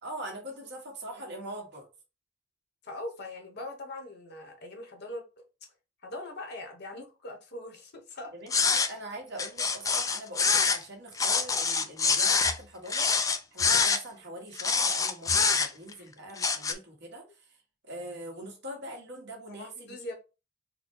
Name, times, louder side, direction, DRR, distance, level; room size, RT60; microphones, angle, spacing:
voice 1, 0.0-1.9 8.3-13.1 13.5-17.5 17.8-20.1, right 1 dB, 55° right, 1.5 m, -42 dB
voice 2, 2.8-5.2 6.0-8.3 15.9-16.1 19.5-20.1, left 1 dB, 55° left, 1.1 m, -41 dB
sound 1, 8.5-8.9 9.4-10.8 11.2-12.6 12.9-14.0 14.6-15.9 16.4-16.7, left 5 dB, 15° left, 0.3 m, -25 dB
4.0 x 2.2 x 4.5 m
head